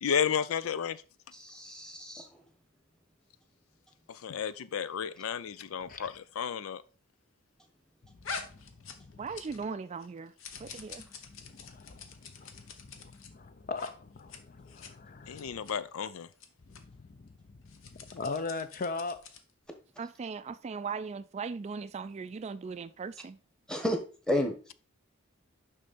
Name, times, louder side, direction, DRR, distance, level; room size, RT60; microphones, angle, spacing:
voice 1, 0.0-1.0 4.1-6.8 15.3-16.3, left 7 dB, 85° left, 0.4 m, -32 dB
voice 2, 1.3-2.3 23.7-24.0 24.3-24.7, left 1 dB, 5° left, 1.2 m, -31 dB
sound 1, 8.2-9.7 10.0-13.3 13.7-13.9 14.2-14.4 14.7-14.9 15.3-15.7 16.3-16.5 16.7-16.8 17.6-19.5, left 5 dB, 70° left, 1.0 m, -45 dB
voice 3, 9.2-10.3 10.6-11.0 20.0-23.4, right 5 dB, 30° right, 0.3 m, -38 dB
voice 4, 11.3-12.1 12.4-15.5 16.7-17.2 17.7-19.2, left 3 dB, 45° left, 0.6 m, -40 dB
6.3 x 5.4 x 4.1 m
head